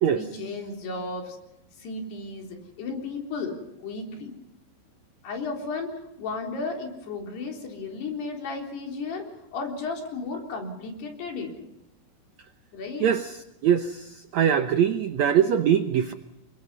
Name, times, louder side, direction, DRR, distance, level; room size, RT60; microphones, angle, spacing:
voice 1, 0.1-1.4 1.8-4.4 5.2-9.3 9.5-11.5 12.7-13.1, left 3 dB, 80° left, 2 dB, 6.0 m, -34 dB
voice 2, 13.0-13.4 13.6-16.1, right 8 dB, 85° right, 9 dB, 1.5 m, -22 dB
29.0 x 23.0 x 5.6 m, 0.91 s
omnidirectional pair, 4.6 m